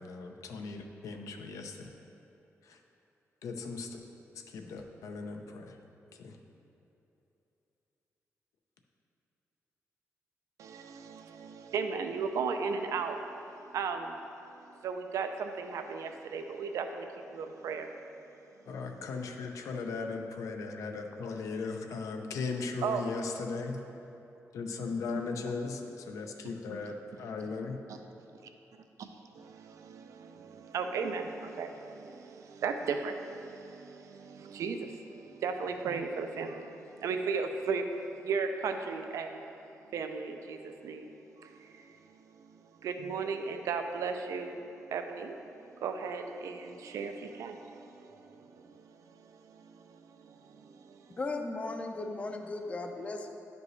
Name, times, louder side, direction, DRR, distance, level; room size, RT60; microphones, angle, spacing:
voice 1, 0.0-1.9 2.6-2.8 3.4-4.0 4.3-5.8 6.1-6.4 18.7-23.8 24.5-27.8, left 4 dB, 85° left, 4 dB, 0.6 m, -38 dB
voice 2, 10.6-13.4 13.7-14.3 14.7-17.9 22.8-23.0 27.9-28.0 29.0-29.1 29.3-37.9 38.1-39.4 39.9-41.1 41.4-51.2, right 5 dB, 85° right, 6 dB, 0.5 m, -36 dB
voice 3, 51.2-53.3, left 2 dB, 25° left, 5 dB, 0.4 m, -36 dB
10.5 x 5.2 x 3.2 m, 2.9 s
wide cardioid pair, 150°, 5 cm